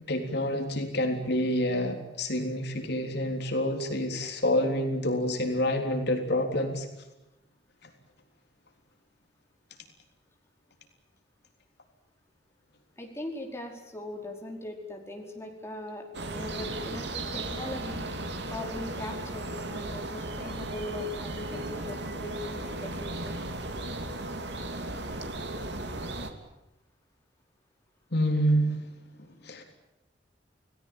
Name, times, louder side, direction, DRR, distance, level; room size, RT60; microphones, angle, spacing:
voice 1, 0.0-6.9 28.1-28.9 29.2-29.6, equal, 65° left, 4 dB, 3.6 m, -28 dB
voice 2, 13.0-18.0 18.5-23.4, left 1 dB, 15° left, 1 dB, 4.9 m, -39 dB
sound 1, 16.1-26.3, right 2 dB, 65° right, 3.1 m, -36 dB
29.0 x 18.5 x 8.9 m, 0.97 s
head